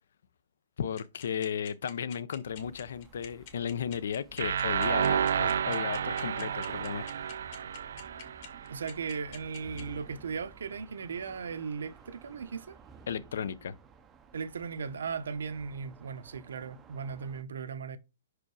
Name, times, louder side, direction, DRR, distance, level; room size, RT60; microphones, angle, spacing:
voice 1, 0.8-7.1 13.1-13.7, left 7 dB, 65° left, 0.6 m, -35 dB
sound 1, 1.0-9.8, left 9 dB, 35° left, 1.5 m, -46 dB
sound 2, 2.4-17.4, right 5 dB, 10° right, 0.5 m, -55 dB
sound 3, 4.4-9.3, right 8 dB, 65° right, 0.3 m, -31 dB
voice 2, 8.7-12.8 14.3-18.0, right 5 dB, 85° right, 0.9 m, -37 dB
5.8 x 4.9 x 4.8 m
hypercardioid pair, 175°, 0 cm